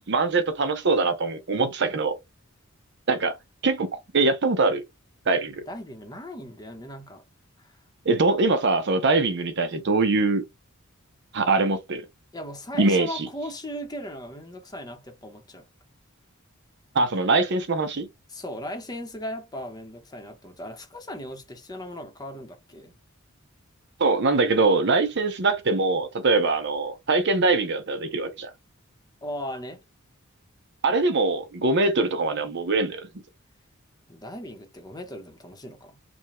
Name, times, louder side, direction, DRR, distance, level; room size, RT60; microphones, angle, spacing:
voice 1, 0.1-2.2 3.1-3.4 3.6-4.8 5.3-5.6 8.1-10.4 11.3-12.0 12.8-13.3 16.9-18.1 24.0-28.5 30.8-33.1, right 3 dB, 55° right, 0.7 m, -23 dB
voice 2, 5.7-7.2 7.6-7.8 12.3-15.7 18.3-22.9 29.2-29.8 34.1-36.0, equal, 20° left, 0.9 m, -37 dB
5.1 x 2.3 x 3.0 m
head